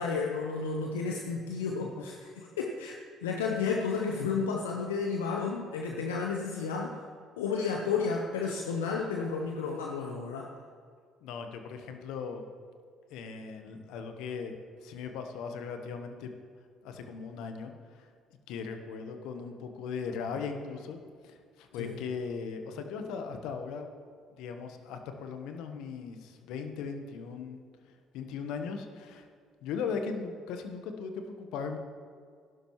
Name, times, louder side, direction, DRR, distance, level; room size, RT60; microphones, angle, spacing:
voice 1, 0.0-7.0 7.4-10.5 21.8-21.9, left 5 dB, 90° left, 1 dB, 0.7 m, -32 dB
voice 2, 11.2-12.4 13.1-16.3 16.8-18.1 18.5-21.0 21.2-23.9 24.4-27.6 28.1-29.3 29.6-31.8, left 5 dB, 75° left, 6 dB, 1.1 m, -38 dB
16.0 x 11.5 x 3.1 m, 2.1 s
hypercardioid pair, 55°, 0 cm